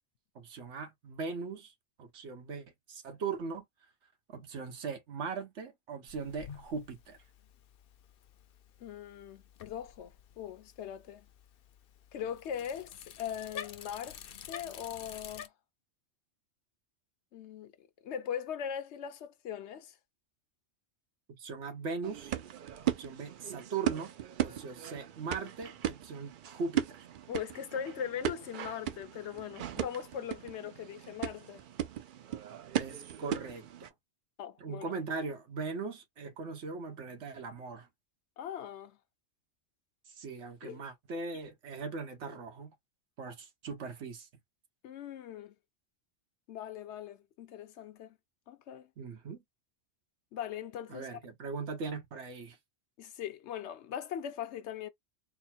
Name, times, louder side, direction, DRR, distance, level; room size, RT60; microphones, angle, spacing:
voice 1, 0.3-1.7 2.0-3.6 4.3-7.2 21.4-22.4 22.8-24.1 24.4-27.1 32.7-33.9 34.6-37.9 40.1-42.7 43.2-44.3 49.0-49.4 50.9-52.6, right 4 dB, 90° right, 1.3 m, -39 dB
Bicycle, 6.1-15.5, left 8 dB, 65° left, 0.7 m, -50 dB
voice 2, 8.8-11.3 12.1-14.2 14.5-15.5 17.3-20.0 27.3-31.6 34.4-34.9 38.4-39.0 40.6-40.8 44.8-45.5 46.5-48.2 48.5-48.9 50.3-51.1 53.0-54.9, left 9 dB, 80° left, 1.0 m, -40 dB
sound 1, 22.0-33.9, right 11 dB, 60° right, 0.6 m, -37 dB
4.1 x 2.0 x 4.3 m
omnidirectional pair, 1.1 m